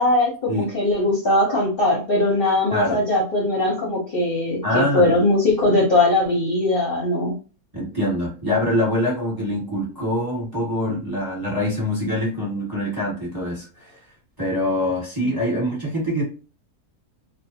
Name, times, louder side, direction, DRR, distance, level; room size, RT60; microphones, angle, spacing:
voice 1, 0.0-7.3, left 2 dB, 50° left, -4 dB, 0.7 m, -20 dB
voice 2, 4.6-5.2 7.7-13.9 14.4-16.2, left 1 dB, 15° right, -5 dB, 1.1 m, -24 dB
2.5 x 2.2 x 2.7 m, 0.34 s
omnidirectional pair, 1.6 m